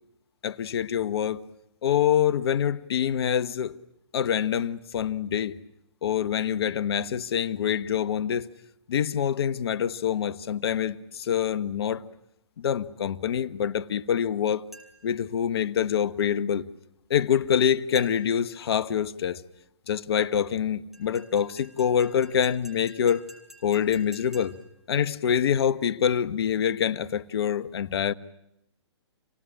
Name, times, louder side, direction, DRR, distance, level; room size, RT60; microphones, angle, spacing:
voice 1, 0.4-1.4 1.8-3.8 4.1-5.6 6.0-8.5 8.9-12.0 12.6-14.6 15.0-16.7 17.1-19.4 19.9-23.3 23.6-24.6 24.9-28.1, left 8 dB, 60° left, 1.2 m, -25 dB
sound 1, 14.7-15.2 17.9-18.5 20.9-24.8, right 1 dB, ahead, 4.4 m, -50 dB
28.5 x 18.5 x 10.0 m
hypercardioid pair, 130°, 15 cm